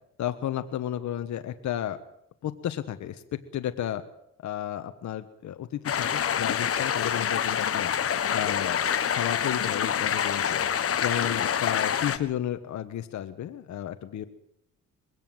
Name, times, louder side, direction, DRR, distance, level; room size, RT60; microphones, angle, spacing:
voice 1, 0.2-2.0 2.4-4.0 4.4-7.9 8.3-8.9 9.1-10.6 11.0-14.3, left 11 dB, 70° left, 9 dB, 1.3 m, -32 dB
sound 1, 5.9-12.2, left 8 dB, 50° left, 1.4 m, -26 dB
21.5 x 16.5 x 7.8 m, 0.75 s
cardioid pair, 90°, 30 cm